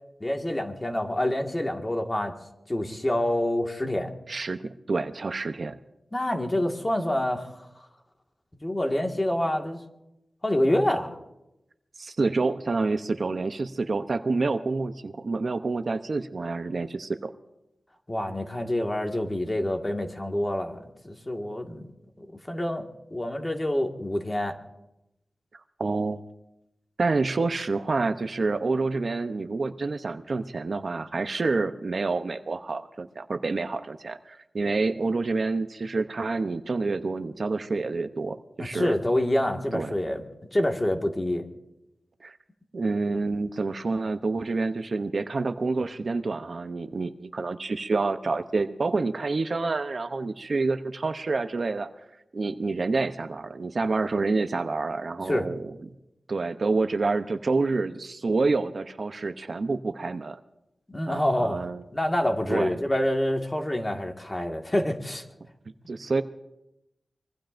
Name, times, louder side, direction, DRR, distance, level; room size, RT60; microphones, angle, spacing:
voice 1, 0.2-2.3 2.7-4.1 6.1-7.6 8.6-9.8 10.4-11.2 18.1-21.9 22.2-24.5 38.6-40.2 40.5-41.4 55.3-55.5 60.9-65.2, left 1 dB, 20° left, 3 dB, 1.8 m, -27 dB
voice 2, 4.3-5.8 12.0-17.3 25.8-26.2 27.0-39.0 39.7-39.9 42.2-42.4 42.7-51.9 52.3-55.7 56.3-60.4 61.1-61.8 62.5-62.7 65.9-66.2, right 3 dB, 55° right, 9 dB, 0.7 m, -28 dB
24.5 x 22.0 x 2.6 m, 0.91 s
wide cardioid pair, 100°, 0 cm